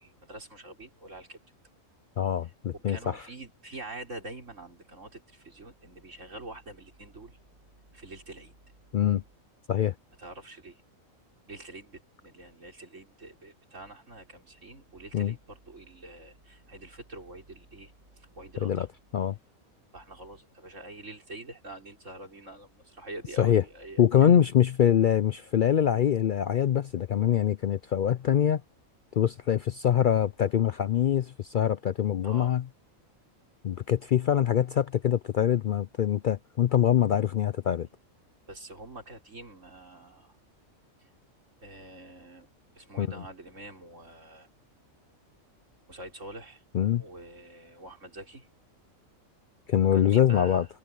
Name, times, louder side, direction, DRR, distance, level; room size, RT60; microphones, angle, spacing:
voice 1, 0.0-1.4 2.7-7.4 7.9-8.5 10.2-10.8 11.5-17.9 18.4-18.9 19.9-24.3 32.2-32.5 38.5-40.4 41.6-42.5 42.8-44.5 45.9-46.6 47.0-48.5 49.9-50.7, right 1 dB, 65° right, 5.3 m, -45 dB
voice 2, 2.2-3.3 8.9-9.2 9.7-9.9 15.1-15.3 18.6-18.9 19.1-19.4 23.4-23.6 24.0-28.6 29.1-32.6 33.6-37.9 43.0-43.2 46.7-47.0 49.7-50.7, left 9 dB, 75° left, 0.4 m, -24 dB
omnidirectional pair, 1.4 m